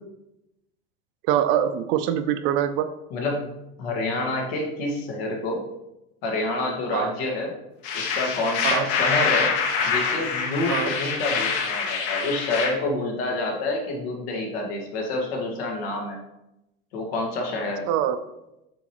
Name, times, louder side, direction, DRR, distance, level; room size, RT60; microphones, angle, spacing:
voice 1, 1.3-2.9 6.9-7.1 8.6-8.9 10.7-10.9 17.9-18.2, right 10 dB, 45° right, 11 dB, 0.4 m, -23 dB
voice 2, 3.1-5.6 6.2-7.5 7.9-9.6 9.8-16.2 16.9-17.8, left 2 dB, 90° left, 1 dB, 1.9 m, -28 dB
sound 1, 7.8-12.7, left 5 dB, 70° left, 1.3 m, -25 dB
7.6 x 5.1 x 3.0 m, 0.90 s
cardioid pair, 170°, 29 cm